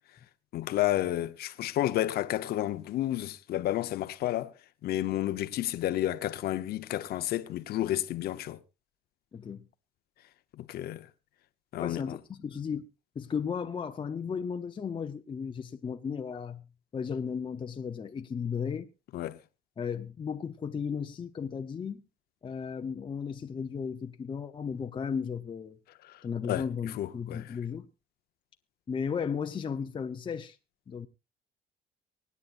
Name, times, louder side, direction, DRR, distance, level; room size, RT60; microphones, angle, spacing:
voice 1, 0.5-4.5 4.8-8.6 10.6-11.0 11.7-12.2 19.1-19.4 26.5-26.6 27.0-27.4, left 13 dB, 70° left, 0.9 m, -31 dB
voice 2, 9.3-9.7 11.7-12.9 13.1-16.7 16.9-18.9 19.8-22.0 22.4-25.8 26.2-27.9 28.9-30.6 30.9-31.1, left 6 dB, 30° left, 0.8 m, -35 dB
24.0 x 9.6 x 2.5 m
cardioid pair, 110°, 17 cm